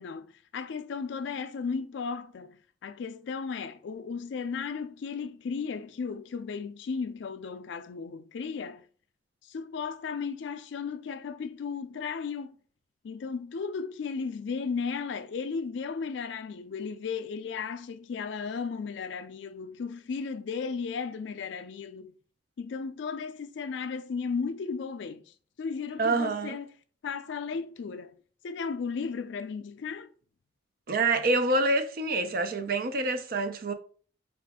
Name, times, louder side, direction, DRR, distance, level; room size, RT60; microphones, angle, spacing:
voice 1, 0.0-8.8 9.5-12.5 13.0-22.1 22.6-25.2 25.6-26.7 27.0-28.2 28.4-30.1, left 5 dB, 70° left, 0.4 m, -35 dB
voice 2, 26.0-26.6 30.9-33.7, right 2 dB, 50° right, 0.5 m, -26 dB
4.7 x 2.4 x 3.5 m
head